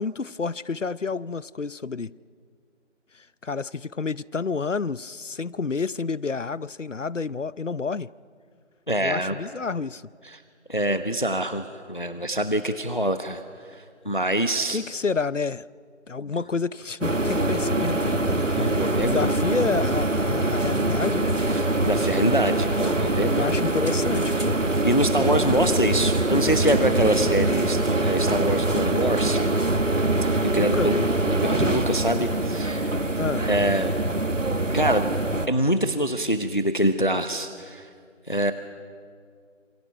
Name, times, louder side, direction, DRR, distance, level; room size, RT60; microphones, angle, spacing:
voice 1, 0.0-2.1 3.4-8.1 9.0-10.0 10.9-11.0 14.7-15.7 16.1-21.4 23.4-24.6 30.6-31.1 33.2-33.5, left 4 dB, 70° left, 0.7 m, -29 dB
voice 2, 8.9-9.4 10.2-10.4 10.7-13.4 13.7-14.8 18.5-19.3 21.5-23.5 24.8-29.4 30.2-31.0 31.2-32.9 33.5-34.0 34.7-35.0 35.5-37.9 38.3-38.5, right 1 dB, 40° left, 0.9 m, -25 dB
sound 1, 17.0-35.5, right 2 dB, 75° right, 1.5 m, -24 dB
27.5 x 27.5 x 5.7 m
figure-of-eight pair, 175°, 38 cm